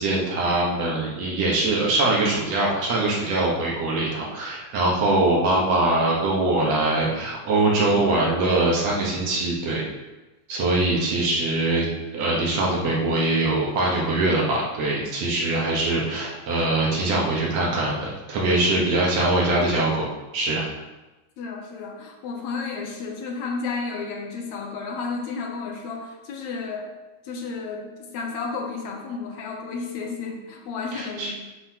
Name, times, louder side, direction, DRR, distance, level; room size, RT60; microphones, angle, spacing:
voice 1, 0.0-9.8 10.5-11.9 12.1-20.1 20.3-20.7 30.9-31.3, right 2 dB, 65° right, -3 dB, 2.3 m, -22 dB
voice 2, 21.4-26.9 27.2-31.4, left 4 dB, 75° left, 1 dB, 2.1 m, -32 dB
7.8 x 6.6 x 2.9 m, 1.1 s
omnidirectional pair, 3.4 m